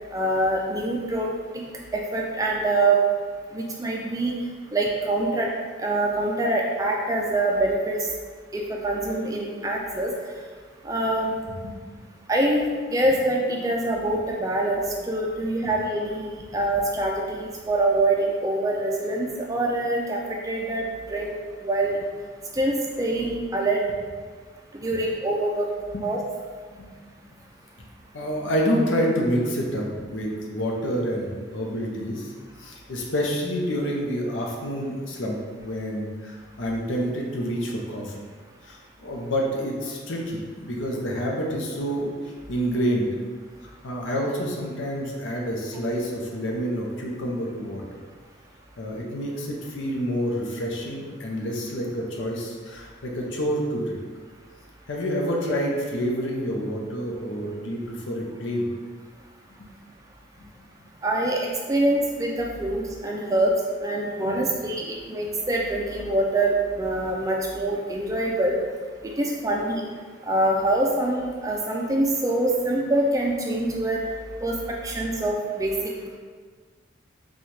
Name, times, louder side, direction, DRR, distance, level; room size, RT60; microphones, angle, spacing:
voice 1, 0.1-1.3 1.5-1.6 1.9-3.0 3.5-4.4 4.7-5.5 5.8-8.0 8.5-10.1 10.8-11.3 12.3-22.0 22.5-23.8 24.7-25.7 26.0-26.2 61.0-63.5 63.8-68.6 69.2-69.8 70.3-74.0 74.4-74.6 74.8-75.7, right 2 dB, 15° right, -1 dB, 0.3 m, -25 dB
voice 2, 28.1-32.3 32.6-38.1 38.6-43.1 43.6-47.8 48.8-54.0 54.9-58.7 59.6-59.7 60.4-60.5 64.2-64.6, equal, 80° left, -1 dB, 0.7 m, -28 dB
4.2 x 2.3 x 3.1 m, 1.5 s
head